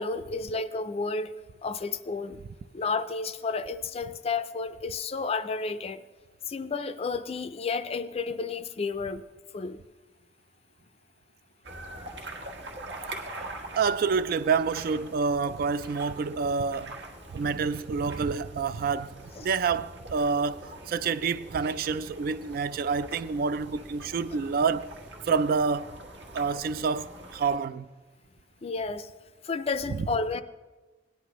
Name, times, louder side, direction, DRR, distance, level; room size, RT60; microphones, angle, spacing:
voice 1, 0.0-1.4 1.6-2.4 2.7-6.0 6.5-9.2 9.5-9.8 19.4-19.5 28.6-29.1 29.4-30.4, left 4 dB, 35° left, 0.4 m, -31 dB
sound 1, 11.6-27.6, right 1 dB, 80° right, 1.5 m, -44 dB
voice 2, 13.8-17.0 17.3-19.2 19.4-24.9 25.2-26.0 26.3-27.9 29.9-30.1, right 5 dB, 55° right, 0.3 m, -28 dB
17.5 x 10.0 x 3.0 m
head